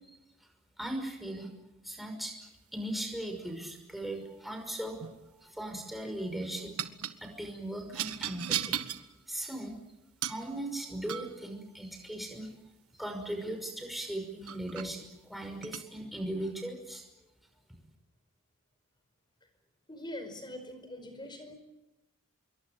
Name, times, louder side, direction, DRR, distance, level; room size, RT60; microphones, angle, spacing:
voice 1, 0.1-0.5 0.8-1.5 1.8-5.0 5.3-6.7 7.2-8.8 9.3-9.7 10.2-12.5 12.9-17.0, right 1 dB, ahead, 3 dB, 5.7 m, -38 dB
sound 1, 4.8-5.2 6.8-7.2 7.9-9.1 10.2-10.5 11.1-11.4 13.8-13.9 14.5-14.9 15.6-15.9, right 10 dB, 80° right, 1.4 m, -35 dB
voice 2, 19.9-21.5, left 1 dB, 20° left, 8 dB, 5.0 m, -43 dB
26.5 x 23.0 x 8.9 m, 0.94 s
head